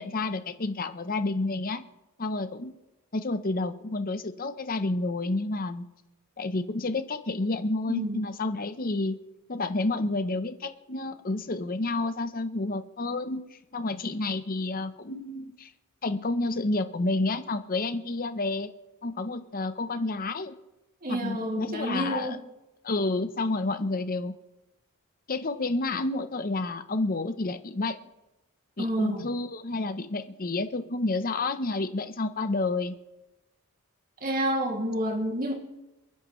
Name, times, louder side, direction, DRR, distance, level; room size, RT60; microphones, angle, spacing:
voice 1, 0.0-1.8 2.2-2.7 3.1-5.8 6.4-9.2 9.5-15.7 16.0-18.7 19.0-20.6 21.1-22.4 22.8-24.3 25.3-28.0 28.8-32.9, left 2 dB, 40° left, 10 dB, 0.8 m, -30 dB
voice 2, 7.9-8.2 21.0-22.4 28.8-29.3 34.2-35.5, right 1 dB, 40° right, 1 dB, 2.5 m, -29 dB
29.0 x 10.0 x 3.2 m, 1.0 s
head